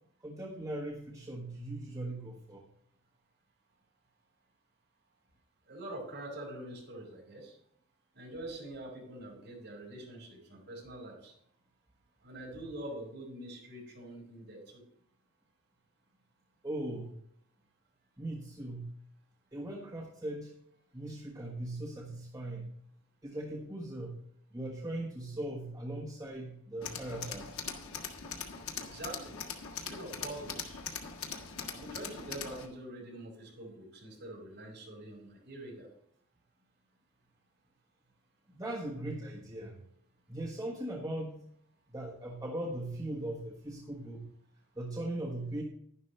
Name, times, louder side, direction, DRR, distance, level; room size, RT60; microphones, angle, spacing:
voice 1, 0.2-2.7 16.6-17.1 18.2-18.9 19.5-20.5 20.9-22.7 23.2-24.2 24.5-27.5 38.5-39.8 40.3-41.3 41.9-44.3 44.7-45.6, right 1 dB, 15° right, -4 dB, 1.3 m, -39 dB
voice 2, 5.7-7.5 8.1-11.3 12.2-14.8 28.8-29.3 29.8-30.8 31.7-35.9, right 1 dB, 50° right, -2 dB, 5.2 m, -45 dB
Tools, 26.8-32.7, left 6 dB, 75° left, 1.7 m, -41 dB
11.5 x 11.0 x 3.3 m, 0.70 s
head